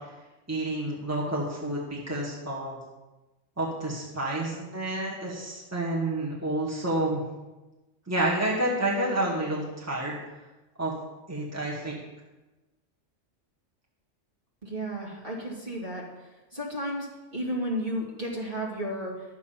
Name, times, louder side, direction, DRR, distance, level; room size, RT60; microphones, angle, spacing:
voice 1, 0.5-2.8 3.6-7.2 8.1-10.1 10.8-10.9 11.3-12.0, right 1 dB, 10° right, -4 dB, 1.9 m, -29 dB
voice 2, 14.6-16.0 16.5-19.2, equal, 45° right, -4 dB, 2.7 m, -33 dB
12.5 x 7.0 x 5.7 m, 1.1 s
omnidirectional pair, 1.3 m